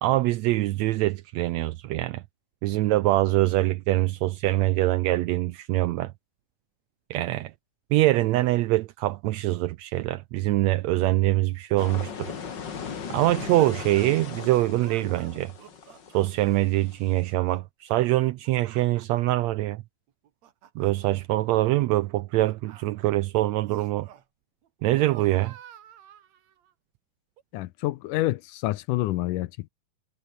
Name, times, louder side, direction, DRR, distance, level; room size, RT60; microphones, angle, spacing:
voice 1, 0.0-2.2 2.6-6.1 7.1-7.5 7.9-12.3 13.1-15.5 16.1-19.8 20.8-24.1 24.8-25.5, right 17 dB, 85° right, 1.5 m, -24 dB
sound 1, 11.8-17.3, left 6 dB, 40° left, 2.1 m, -38 dB
sound 2, 13.2-14.2 14.8-16.6 17.0-17.6 18.1-19.4 20.1-21.1 22.0-23.1 23.6-24.3 24.6-26.7 27.4-27.5, right 10 dB, 60° right, 2.6 m, -50 dB
voice 2, 27.5-29.7, left 17 dB, 80° left, 2.2 m, -28 dB
omnidirectional pair, 3.8 m